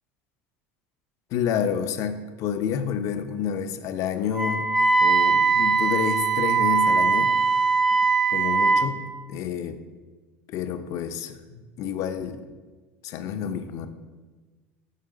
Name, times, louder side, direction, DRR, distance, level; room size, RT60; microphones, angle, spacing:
voice 1, 1.3-4.7 5.0-7.3 8.3-9.8 10.5-12.4 13.0-13.9, left 8 dB, 55° left, 9 dB, 0.5 m, -29 dB
Wind instrument woodwind instrument, 4.3-8.9, right 4 dB, 5° right, 0.6 m, -21 dB
6.7 x 3.3 x 5.1 m, 1.3 s
supercardioid pair, 115°, 6 cm